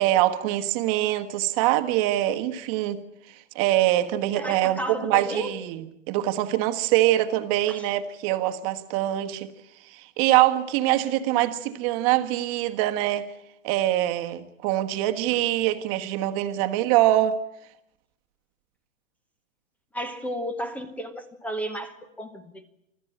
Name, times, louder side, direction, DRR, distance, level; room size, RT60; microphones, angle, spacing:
voice 1, 0.0-3.0 3.3-9.5 9.9-13.3 13.6-17.4, right 14 dB, 30° right, 1.4 m, -24 dB
voice 2, 4.3-5.5 7.7-7.8 19.9-22.7, equal, 5° left, 1.0 m, -33 dB
25.5 x 14.5 x 9.9 m
hypercardioid pair, 155°, 38 cm